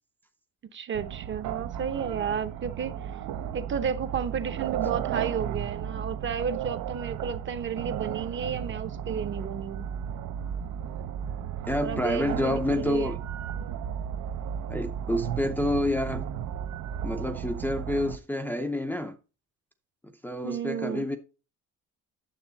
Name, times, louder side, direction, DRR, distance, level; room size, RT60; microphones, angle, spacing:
voice 1, 0.7-3.1 3.5-9.9 11.8-13.2 20.4-21.0, right 7 dB, 35° right, 0.9 m, -32 dB
sound 1, 0.9-18.2, right 9 dB, 75° right, 0.8 m, -34 dB
voice 2, 11.7-13.2 14.7-16.2 17.0-19.2 20.2-21.2, left 1 dB, 5° left, 0.6 m, -28 dB
9.4 x 7.2 x 4.0 m
cardioid pair, 170°, 32 cm